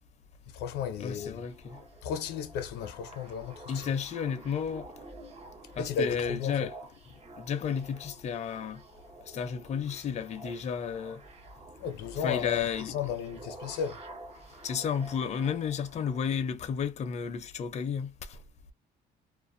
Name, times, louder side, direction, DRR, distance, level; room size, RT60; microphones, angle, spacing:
voice 1, 0.5-1.5 2.0-4.0 5.8-6.7 11.8-14.0, left 7 dB, 85° left, 0.6 m, -34 dB
voice 2, 1.0-1.8 3.7-4.9 5.8-6.8 7.4-8.8 9.3-11.2 12.1-12.9 14.6-18.4, left 7 dB, 40° left, 0.5 m, -32 dB
sound 1, 1.0-16.3, right 2 dB, 40° right, 0.9 m, -49 dB
2.4 x 2.1 x 2.5 m
cardioid pair, 110°, 17 cm